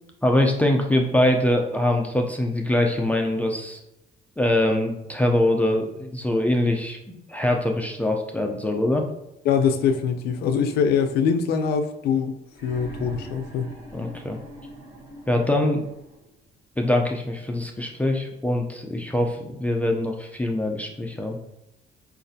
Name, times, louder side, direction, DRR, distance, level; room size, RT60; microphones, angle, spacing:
voice 1, 0.2-3.8 4.4-9.0 13.9-14.4 15.3-15.9 16.8-21.4, left 1 dB, 10° left, 1 dB, 0.4 m, -23 dB
voice 2, 9.4-12.3 12.6-13.7, left 6 dB, 75° left, 7 dB, 0.4 m, -23 dB
sound 1, 12.5-16.3 17.5-17.6, right 1 dB, 20° right, 1.3 m, -41 dB
5.1 x 2.4 x 2.6 m, 0.87 s
cardioid pair, 110°, 17 cm